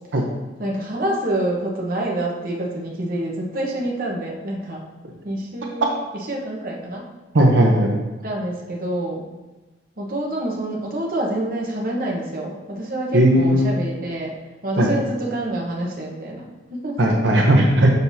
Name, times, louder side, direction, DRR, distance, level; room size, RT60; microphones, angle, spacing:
voice 1, 0.6-4.9 5.2-5.9 6.3-7.1 8.2-9.2 10.0-14.3 14.6-16.4 16.7-17.0, right 1 dB, 50° right, -2 dB, 1.1 m, -27 dB
voice 2, 7.3-8.0 13.1-13.7 14.8-14.9 17.0-17.9, right 1 dB, 80° right, 0 dB, 0.8 m, -16 dB
6.6 x 5.8 x 2.7 m, 1.1 s
head